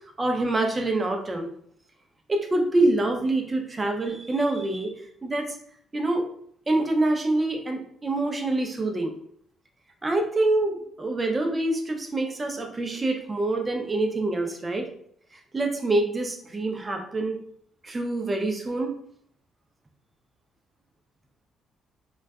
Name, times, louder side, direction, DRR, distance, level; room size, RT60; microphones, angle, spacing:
voice 1, 0.2-1.5 2.3-4.9 5.2-5.6 5.9-6.3 6.7-9.1 10.0-14.9 15.5-17.4 17.8-19.0, right 2 dB, 25° right, 3 dB, 0.5 m, -26 dB
2.5 x 2.3 x 2.2 m, 0.63 s
cardioid pair, 90°, 0 cm